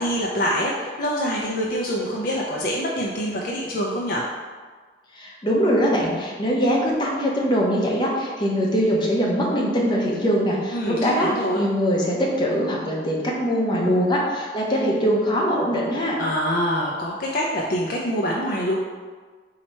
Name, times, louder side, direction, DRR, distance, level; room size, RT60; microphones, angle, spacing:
voice 1, 0.0-4.2 10.7-11.6 16.2-18.8, equal, 50° left, -3 dB, 0.5 m, -25 dB
voice 2, 5.1-11.3 11.5-16.2, equal, 25° left, -3 dB, 0.8 m, -22 dB
4.2 x 2.8 x 4.4 m, 1.5 s
head